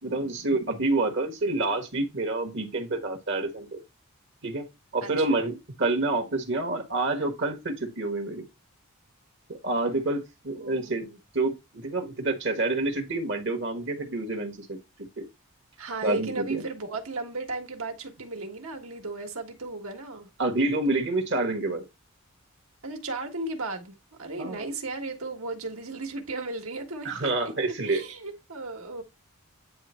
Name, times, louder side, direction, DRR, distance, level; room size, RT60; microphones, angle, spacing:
voice 1, 0.0-3.8 4.4-4.6 4.9-8.5 9.5-11.0 11.3-14.8 15.2-15.3 16.0-16.6 20.4-21.8 24.4-24.7 27.0-28.0, right 2 dB, 55° right, 1.4 m, -28 dB
voice 2, 5.0-5.4 10.6-11.2 15.8-20.3 22.8-27.3 27.9-29.0, right 3 dB, 70° right, 1.7 m, -35 dB
9.5 x 3.3 x 4.4 m
head